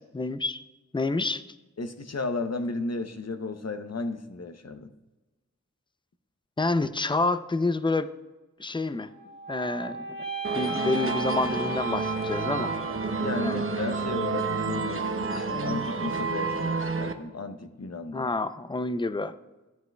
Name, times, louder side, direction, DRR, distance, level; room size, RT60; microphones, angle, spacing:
voice 1, 0.1-0.6 0.9-1.4 6.6-8.1 8.6-9.1 9.5-10.0 10.5-12.7 13.4-13.6 18.1-19.3, left 3 dB, 15° left, 12 dB, 0.5 m, -28 dB
voice 2, 1.8-4.9 13.2-18.3, left 3 dB, 55° left, 8 dB, 0.8 m, -34 dB
sound 1, 9.0-13.3, right 1 dB, 75° right, 2.5 m, -36 dB
sound 2, 10.4-17.1, right 4 dB, 45° right, 0.8 m, -29 dB
14.0 x 9.4 x 2.3 m, 1.1 s
wide cardioid pair, 45°, 30 cm